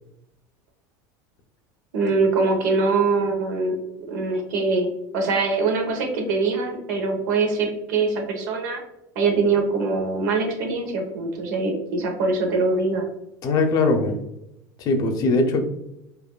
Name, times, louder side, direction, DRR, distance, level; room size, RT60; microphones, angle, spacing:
voice 1, 1.9-3.7 4.1-4.9 5.1-8.8 9.1-13.0, right 3 dB, 90° right, 2 dB, 1.0 m, -23 dB
voice 2, 13.4-14.1 14.8-15.6, left 3 dB, 40° left, 6 dB, 0.6 m, -20 dB
4.9 x 2.6 x 2.2 m, 0.86 s
supercardioid pair, 145°, 10 cm